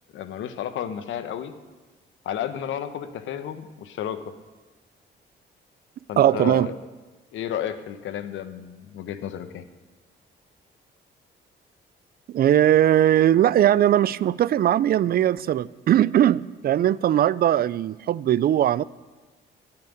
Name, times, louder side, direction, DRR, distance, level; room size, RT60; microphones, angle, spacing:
voice 1, 0.1-1.5 2.2-4.2 6.1-6.7 7.3-9.7, left 10 dB, 80° left, 11 dB, 0.9 m, -32 dB
voice 2, 6.2-6.7 12.3-18.8, right 11 dB, 50° right, 20 dB, 0.4 m, -20 dB
12.5 x 5.9 x 9.3 m, 1.2 s
cardioid pair, 90°, 20 cm